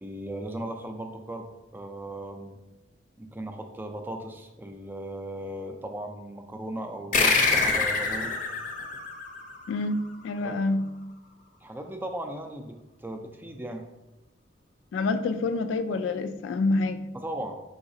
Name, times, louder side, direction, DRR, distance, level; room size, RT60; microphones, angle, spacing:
voice 1, 0.0-2.6 3.2-8.4 10.4-10.5 11.6-13.9 17.2-17.6, right 1 dB, 10° right, 5 dB, 0.4 m, -37 dB
sound 1, 7.1-10.1, left 4 dB, 45° left, 0.6 m, -26 dB
voice 2, 9.7-10.9 14.9-17.1, left 3 dB, 90° left, 9 dB, 0.3 m, -27 dB
4.8 x 3.9 x 2.6 m, 0.99 s
head